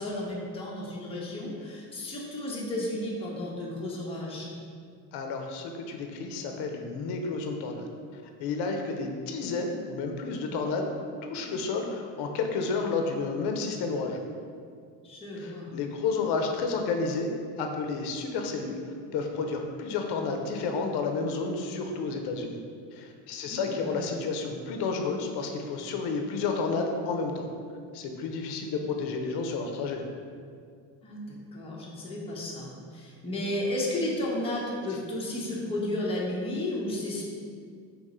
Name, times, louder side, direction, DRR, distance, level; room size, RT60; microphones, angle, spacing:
voice 1, 0.0-4.5 15.0-15.7 23.4-24.0 31.0-37.2, left 1 dB, 15° left, -4 dB, 0.7 m, -33 dB
voice 2, 5.1-7.9 8.1-10.8 11.2-14.2 15.4-17.3 17.6-18.8 19.1-22.6 22.9-27.5 27.9-30.0, left 4 dB, 70° left, 3 dB, 0.6 m, -31 dB
3.6 x 3.0 x 4.1 m, 2.2 s
cardioid pair, 130°, 41 cm